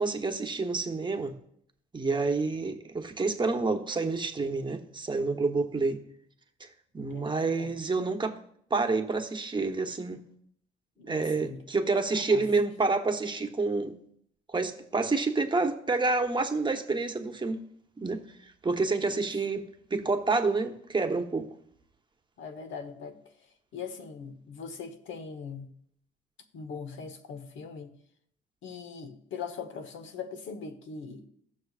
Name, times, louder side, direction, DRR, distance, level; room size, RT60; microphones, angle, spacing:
voice 1, 0.0-1.3 1.9-6.0 6.6-6.7 6.9-8.4 8.7-10.2 11.0-13.9 14.5-17.6 18.0-18.2 18.6-21.5, right 3 dB, 25° right, 1.0 m, -28 dB
voice 2, 7.1-7.7 11.0-11.6 12.3-12.5 19.0-19.4 22.4-25.7 26.5-27.9 28.6-31.3, left 5 dB, 75° left, 1.1 m, -41 dB
16.0 x 6.4 x 2.4 m
cardioid pair, 90°, 20 cm